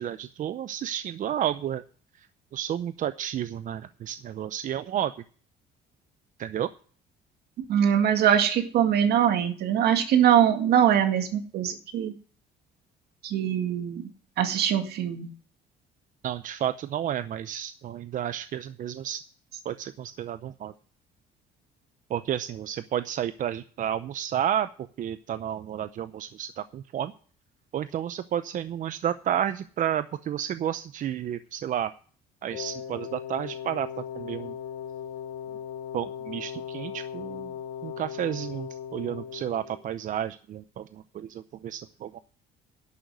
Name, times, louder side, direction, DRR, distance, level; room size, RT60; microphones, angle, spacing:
voice 1, 0.0-1.8 2.5-5.1 6.4-6.7 16.2-19.2 19.6-20.7 22.1-24.7 25.0-27.1 27.7-31.9 32.4-33.9 34.1-34.6 35.9-37.5 37.8-42.2, right 10 dB, 50° right, 13 dB, 0.6 m, -31 dB
voice 2, 7.7-12.1 13.2-14.0 14.4-15.3, right 9 dB, 70° right, 7 dB, 1.9 m, -22 dB
Wind instrument woodwind instrument, 32.5-39.8, left 8 dB, 90° left, 3.1 m, -38 dB
11.0 x 6.5 x 9.2 m, 0.44 s
cardioid pair, 110°, 17 cm